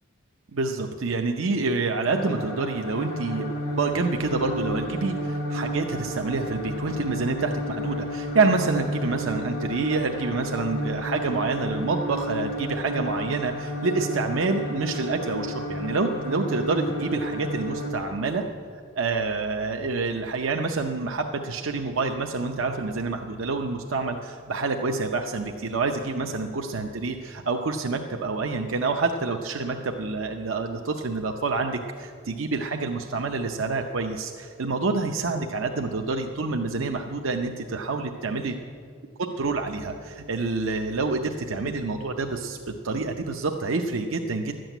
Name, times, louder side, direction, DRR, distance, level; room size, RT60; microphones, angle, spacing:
voice 1, 0.5-3.5 3.8-18.4 18.9-38.6 39.4-42.6 42.8-44.5, right 3 dB, 80° right, 4 dB, 0.7 m, -27 dB
sound 1, 2.1-17.9, equal, 75° left, 2.0 m, -32 dB
12.5 x 7.7 x 9.0 m, 2.1 s
head